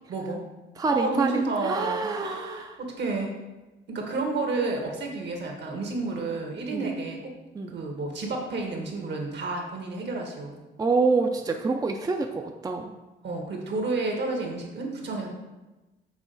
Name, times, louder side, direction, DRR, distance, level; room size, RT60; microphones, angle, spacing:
voice 1, 0.1-0.4 0.9-3.3 3.9-7.3 7.7-10.5 13.2-15.3, right 3 dB, 60° right, 1 dB, 1.4 m, -30 dB
voice 2, 0.8-2.8 6.7-6.9 7.5-7.8 10.8-12.9, right 4 dB, 20° right, 4 dB, 0.4 m, -26 dB
6.1 x 4.0 x 3.9 m, 1.1 s
cardioid pair, 90°, 20 cm